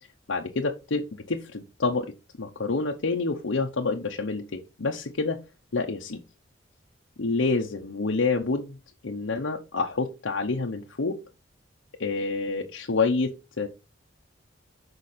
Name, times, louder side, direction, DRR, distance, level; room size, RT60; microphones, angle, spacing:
voice 1, 0.3-5.4 5.7-6.2 7.2-8.8 9.0-11.2 12.0-13.7, left 3 dB, 85° left, 1 dB, 0.8 m, -28 dB
6.6 x 4.7 x 4.2 m, 0.27 s
head